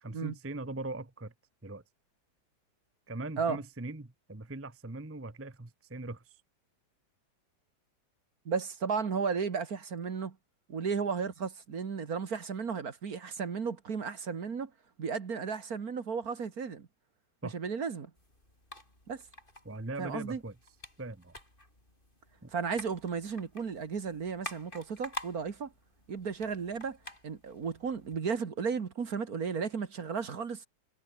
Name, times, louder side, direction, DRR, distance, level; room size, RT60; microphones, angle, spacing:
voice 1, 0.0-1.3 1.6-1.8 3.1-6.4 17.4-17.6 19.6-20.5 21.0-21.4 22.4-22.5, right 2 dB, 10° right, 1.0 m, -40 dB
voice 2, 8.5-10.4 10.7-14.7 15.0-16.9 17.5-18.1 19.1-19.2 20.0-20.4 22.5-25.7 26.1-27.0 27.2-30.7, right 5 dB, 50° right, 2.1 m, -34 dB
sound 1, 18.1-28.2, left 1 dB, 25° left, 7.3 m, -49 dB
omnidirectional pair, 2.1 m